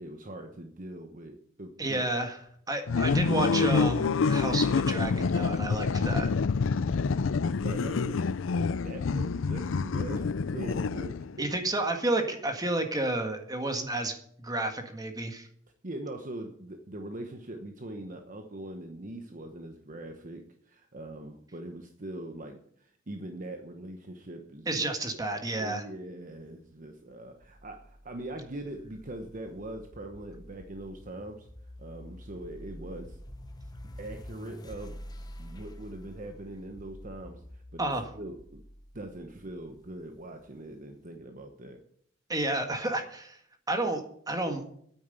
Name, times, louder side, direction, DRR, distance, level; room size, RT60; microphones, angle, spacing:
voice 1, 0.0-2.1 7.6-8.3 8.8-11.5 15.8-24.9 25.5-31.5 31.8-33.2 34.0-35.0 35.4-38.6 38.9-41.8, right 1 dB, 45° right, 5 dB, 1.1 m, -42 dB
voice 2, 1.8-2.4 2.7-6.3 11.4-15.5 24.7-25.8 37.8-38.1 42.3-43.4 43.7-44.6, right 2 dB, 20° right, 5 dB, 1.8 m, -31 dB
sound 1, 2.9-11.4, left 5 dB, 90° left, 0.5 m, -27 dB
sound 2, 27.4-40.6, equal, 20° left, 1.1 m, -48 dB
9.4 x 9.1 x 8.2 m, 0.65 s
head